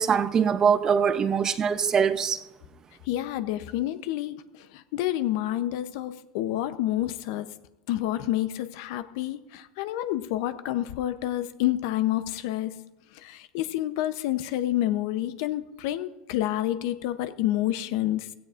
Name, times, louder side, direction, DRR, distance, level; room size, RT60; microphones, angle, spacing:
voice 1, 0.0-2.4, right 7 dB, 30° right, 0.6 m, -23 dB
voice 2, 3.1-7.5 7.9-18.3, left 14 dB, 70° left, 0.7 m, -29 dB
16.5 x 14.5 x 2.5 m
supercardioid pair, 125°, 2 cm